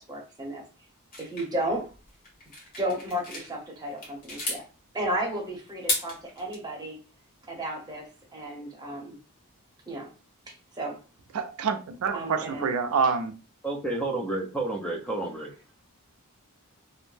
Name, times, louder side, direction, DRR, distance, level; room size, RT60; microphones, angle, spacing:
voice 1, 0.1-0.6 1.2-1.9 2.8-4.7 4.9-7.0 7.5-9.2 9.9-10.1 10.5-11.0 12.1-12.7, right 1 dB, 20° right, 0.7 m, -33 dB
sound 1, 1.1-3.5 3.9-4.6 5.7-6.6, left 2 dB, 40° left, 1.0 m, -33 dB
voice 2, 11.3-13.3, right 5 dB, 70° right, 0.4 m, -27 dB
voice 3, 13.6-15.5, right 2 dB, 5° left, 0.4 m, -30 dB
2.5 x 2.1 x 3.1 m
head